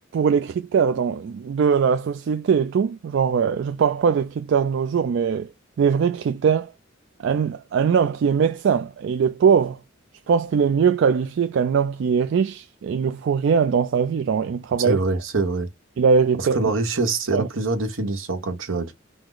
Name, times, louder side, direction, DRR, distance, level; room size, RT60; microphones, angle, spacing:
voice 1, 0.1-5.5 5.8-6.7 7.2-9.8 10.3-15.0 16.0-16.6 17.3-17.5, right 6 dB, 60° right, 0.3 m, -21 dB
voice 2, 14.8-15.7 16.4-18.9, right 3 dB, 80° right, 1.1 m, -24 dB
4.7 x 2.0 x 3.8 m
head